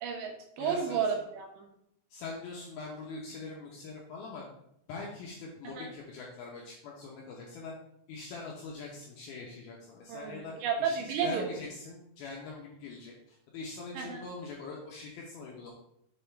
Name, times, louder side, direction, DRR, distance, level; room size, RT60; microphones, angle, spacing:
voice 1, 0.0-1.7 5.7-5.9 10.1-11.5 13.9-14.2, right 7 dB, 80° right, 1 dB, 3.0 m, -32 dB
voice 2, 0.6-1.0 2.1-4.5 4.9-7.7 8.1-15.7, left 4 dB, 75° left, -2 dB, 2.3 m, -43 dB
7.0 x 3.6 x 4.3 m, 0.74 s
omnidirectional pair, 5.2 m